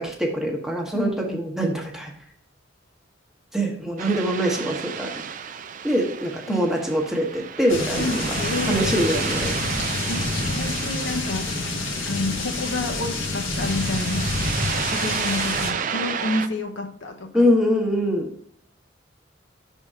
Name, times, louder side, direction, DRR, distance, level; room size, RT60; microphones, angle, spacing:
voice 1, 0.0-2.1 3.5-5.1 5.8-8.4 8.7-9.6 17.3-18.3, equal, ahead, 0 dB, 1.0 m, -24 dB
voice 2, 0.9-1.4 6.5-6.7 8.0-9.2 10.1-11.5 12.1-14.3 14.8-17.5, left 2 dB, 65° left, 5 dB, 0.7 m, -29 dB
sound 1, 4.0-16.5, right 7 dB, 40° right, 0.4 m, -32 dB
sound 2, 7.7-15.7, left 3 dB, 80° left, 1.1 m, -28 dB
5.9 x 3.6 x 5.5 m, 0.66 s
head